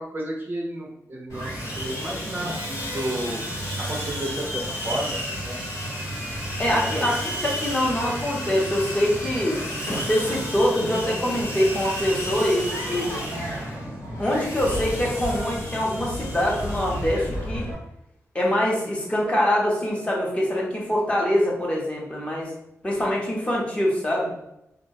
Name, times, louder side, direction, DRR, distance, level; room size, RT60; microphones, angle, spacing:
voice 1, 0.0-3.4 3.8-5.6 6.7-7.1, right 1 dB, 35° right, -1 dB, 0.4 m, -32 dB
Sawing, 1.3-17.7, equal, 70° left, 1.0 m, -31 dB
voice 2, 6.6-9.6 10.0-13.1 14.2-17.7 18.3-22.5 22.8-24.3, left 1 dB, 20° left, -4 dB, 0.7 m, -24 dB
2.3 x 2.1 x 2.6 m, 0.81 s
wide cardioid pair, 105°, 6 cm